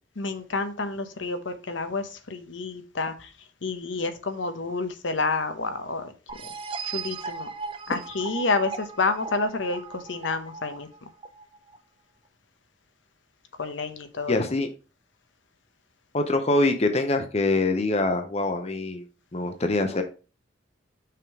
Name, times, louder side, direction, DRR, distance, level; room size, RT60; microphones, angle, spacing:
voice 1, 0.2-3.3 3.6-6.1 6.8-7.5 7.9-10.9 13.6-14.4, left 3 dB, 75° left, 0.8 m, -29 dB
sound 1, 6.3-11.8, right 5 dB, 30° right, 0.6 m, -37 dB
voice 2, 14.3-14.7 16.1-19.0 19.3-20.0, left 2 dB, 35° left, 0.7 m, -24 dB
5.7 x 3.6 x 4.7 m
head